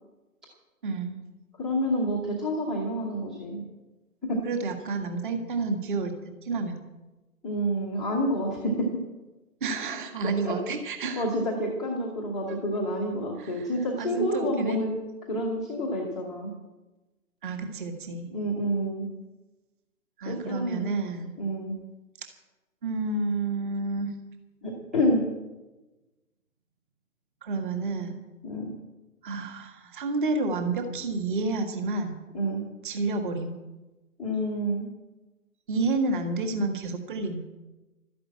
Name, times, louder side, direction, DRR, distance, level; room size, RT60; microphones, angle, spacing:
voice 1, 0.8-1.2 4.5-6.1 6.4-6.8 9.6-11.2 12.5-12.6 13.4-13.7 14.0-14.8 17.4-18.3 20.2-21.3 22.8-24.1 27.4-28.2 29.2-32.2 32.8-33.5 35.7-37.4, right 3 dB, 35° right, 6 dB, 1.8 m, -30 dB
voice 2, 1.6-3.6 4.2-4.4 7.4-9.0 10.4-10.6 11.2-15.0 15.3-16.5 18.3-19.1 20.2-21.0 21.4-21.8 24.6-25.2 28.4-28.7 32.3-32.6 34.2-34.9, equal, ahead, -5 dB, 0.8 m, -28 dB
12.5 x 10.5 x 8.4 m, 1.1 s
figure-of-eight pair, 155°, 45 cm